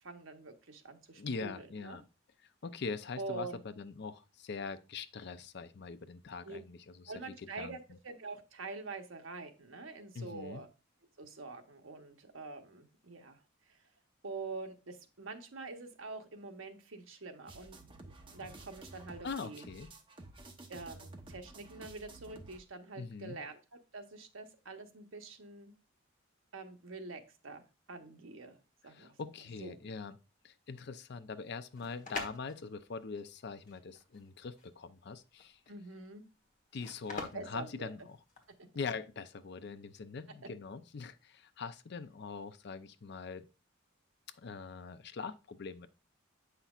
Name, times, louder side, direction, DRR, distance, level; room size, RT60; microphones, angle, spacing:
voice 1, 0.0-2.0 3.2-3.6 6.4-6.6 7.1-10.7 11.2-13.8 14.2-17.8 18.0-19.6 20.7-23.6 23.9-25.7 26.5-27.6 27.9-28.6 28.8-29.2 29.6-29.9 35.7-36.2 37.3-37.9, right 3 dB, 80° right, 1.0 m, -45 dB
voice 2, 1.2-2.0 2.6-6.8 7.6-7.8 10.1-10.6 19.2-19.9 23.0-23.4 28.9-30.2 30.4-35.6 36.7-38.2 38.7-43.4 44.4-45.9, left 4 dB, 55° left, 0.5 m, -42 dB
sound 1, 17.5-22.6, right 2 dB, 25° right, 0.9 m, -52 dB
sound 2, 31.7-38.6, left 3 dB, 40° left, 1.2 m, -46 dB
7.9 x 5.7 x 2.4 m
head